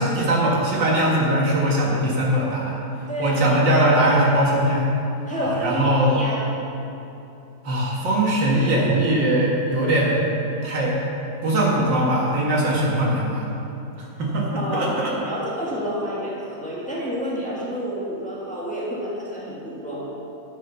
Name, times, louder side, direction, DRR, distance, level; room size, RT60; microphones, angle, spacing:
voice 1, 0.0-2.8 3.2-4.9 5.4-6.2 7.6-10.3 10.6-11.0 11.4-13.5 14.2-15.3, right 1 dB, 85° right, -4 dB, 2.4 m, -21 dB
voice 2, 3.1-3.7 5.2-6.4 14.6-20.1, equal, 5° left, -6 dB, 1.5 m, -29 dB
10.5 x 6.0 x 5.8 m, 2.8 s
omnidirectional pair, 1.9 m